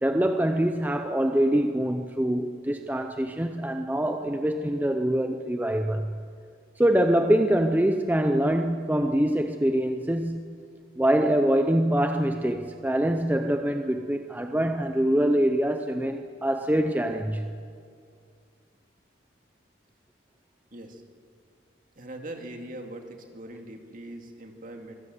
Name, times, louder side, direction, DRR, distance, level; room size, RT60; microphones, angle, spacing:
voice 1, 0.0-6.1 6.8-10.6 11.0-17.5, right 1 dB, 10° right, 6 dB, 0.6 m, -24 dB
voice 2, 20.7-21.0 22.0-24.9, right 1 dB, 45° right, 4 dB, 2.4 m, -41 dB
24.5 x 16.0 x 7.8 m, 2.2 s
head